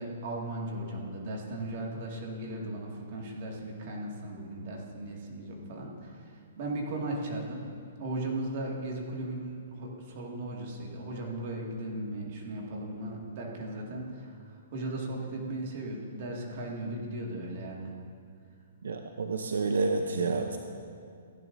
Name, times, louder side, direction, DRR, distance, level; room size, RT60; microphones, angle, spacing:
voice 1, 0.0-7.7 8.0-17.9, right 1 dB, 45° right, -2 dB, 2.1 m, -37 dB
voice 2, 18.8-20.6, right 3 dB, 90° right, 5 dB, 0.6 m, -29 dB
15.5 x 10.5 x 2.7 m, 2.3 s
hypercardioid pair, 155°, 0 cm